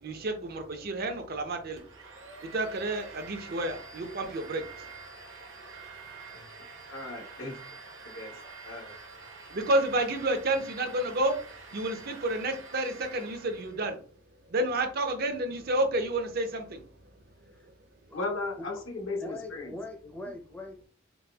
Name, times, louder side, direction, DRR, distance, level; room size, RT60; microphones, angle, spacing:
voice 1, 0.0-1.8 2.4-4.9 9.5-11.4 11.7-14.0 14.5-16.8, right 1 dB, 50° right, 6 dB, 0.5 m, -30 dB
Domestic sounds home sounds, 1.8-13.9, right 4 dB, 70° right, 0.9 m, -47 dB
voice 2, 6.9-7.6 8.0-8.4 8.6-9.0 18.1-19.7, left 3 dB, 80° left, 1 dB, 0.9 m, -36 dB
voice 3, 19.2-20.9, left 2 dB, 10° left, 3 dB, 0.5 m, -41 dB
4.0 x 2.3 x 2.3 m, 0.40 s
head